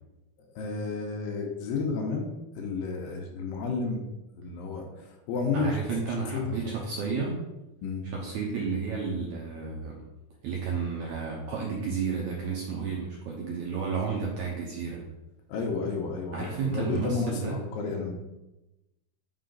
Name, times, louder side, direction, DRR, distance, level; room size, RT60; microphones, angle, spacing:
voice 1, 0.6-2.3 2.6-4.0 4.4-5.8 6.3-6.7 7.8-8.0 15.5-18.1, left 4 dB, 75° left, 2 dB, 2.4 m, -31 dB
voice 2, 5.5-7.4 8.1-10.0 10.4-15.0 16.3-17.6, right 5 dB, 75° right, -3 dB, 1.8 m, -32 dB
5.8 x 4.9 x 3.9 m, 0.99 s
omnidirectional pair, 4.3 m